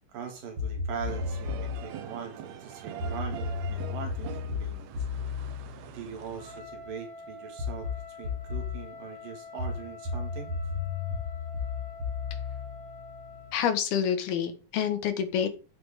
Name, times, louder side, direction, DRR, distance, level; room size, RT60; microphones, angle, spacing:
voice 1, 0.1-5.0 5.9-10.5, right 7 dB, 65° right, 4 dB, 3.7 m, -41 dB
sound 1, 0.6-1.9 3.0-6.7 7.6-8.8 9.6-13.5, left 5 dB, 40° right, 2.5 m, -34 dB
sound 2, 1.1-6.6, right 10 dB, 80° right, 1.5 m, -43 dB
Trumpet, 6.3-13.6, left 3 dB, 25° right, 2.5 m, -46 dB
voice 2, 13.5-15.5, left 8 dB, 80° left, 9 dB, 3.4 m, -27 dB
12.5 x 7.9 x 3.7 m, 0.32 s
omnidirectional pair, 4.4 m